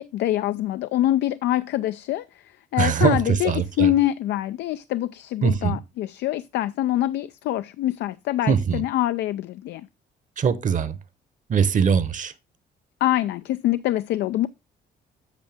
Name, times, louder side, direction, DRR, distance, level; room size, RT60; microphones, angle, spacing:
voice 1, 0.0-2.2 2.7-9.8 13.0-14.5, left 14 dB, 80° left, 0.4 m, -24 dB
voice 2, 2.8-3.9 5.4-5.8 8.5-8.8 10.4-11.0 11.5-12.3, right 6 dB, 45° right, 1.0 m, -21 dB
8.1 x 6.5 x 3.4 m
cardioid pair, 85°, 18 cm